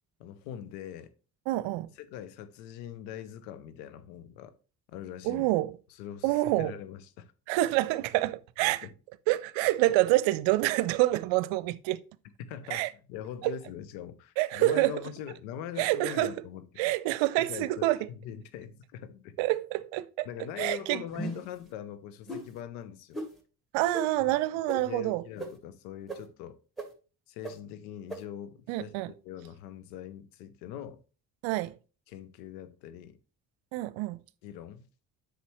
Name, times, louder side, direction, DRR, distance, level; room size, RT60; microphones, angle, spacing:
voice 1, 0.2-1.1 2.0-4.5 4.9-5.5 6.0-7.3 8.6-8.9 12.4-16.7 17.4-19.4 20.2-23.2 24.2-24.4 24.8-26.6 27.3-29.0 29.2-31.0 32.1-33.2 34.4-34.9, left 10 dB, 80° left, 0.9 m, -42 dB
voice 2, 1.5-1.9 5.2-5.8 6.2-6.7 7.5-8.9 9.3-12.0 12.7-12.9 13.4-13.5 14.4-15.0 15.8-16.3 16.8-18.0 19.4-20.3 20.6-21.0 23.7-25.2 28.7-29.1 31.4-31.7 33.7-34.2, right 17 dB, 65° right, 0.7 m, -27 dB
sound 1, 21.1-21.6 22.3-22.4 23.1-23.3 23.9-24.0 24.7-24.8 25.4-25.5 26.1-26.2 26.8-26.9 27.4-27.5 28.1-28.2, right 1 dB, ahead, 2.1 m, -36 dB
8.2 x 5.9 x 3.2 m
hypercardioid pair, 50°, 49 cm